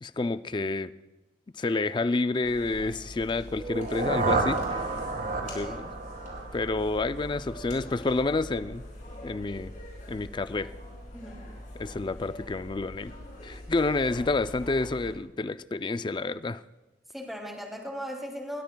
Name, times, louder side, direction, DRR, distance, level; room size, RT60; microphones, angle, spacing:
voice 1, 0.0-0.9 1.6-4.9 5.5-5.9 6.5-8.8 9.2-9.7 10.1-10.7 11.8-13.1 13.4-16.6, left 3 dB, 25° left, 13 dB, 0.4 m, -29 dB
sound 1, 2.4-15.1, left 1 dB, 50° left, 5.4 m, -43 dB
sound 2, 3.6-7.5, right 3 dB, 50° right, 1.5 m, -31 dB
voice 2, 5.3-5.9 11.1-11.4 17.1-18.6, equal, ahead, 1 dB, 2.5 m, -38 dB
21.0 x 20.5 x 2.3 m, 1.1 s
head